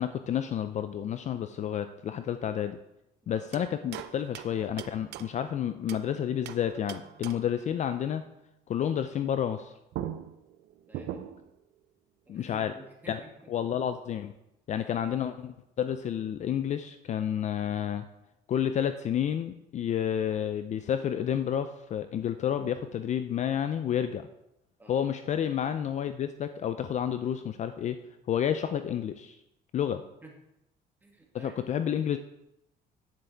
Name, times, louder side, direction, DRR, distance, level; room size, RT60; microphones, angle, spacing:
voice 1, 0.0-2.8 3.3-8.2 8.7-9.7 12.3-12.7 13.1-13.2 13.5-14.3 14.7-18.1 18.5-24.3 24.9-28.0 28.3-29.4 29.7-30.0 31.4-32.2, left 9 dB, 45° left, 10 dB, 0.4 m, -30 dB
sound 1, 3.5-6.1 6.5-7.6 9.6-9.7 9.9-11.6, right 11 dB, 80° right, 0.5 m, -41 dB
voice 2, 10.9-11.2 12.3-13.5 24.8-24.9 30.2-30.3 31.0-31.6, right 1 dB, 10° right, -1 dB, 2.2 m, -50 dB
9.4 x 7.3 x 3.4 m, 0.86 s
cardioid pair, 110°, 17 cm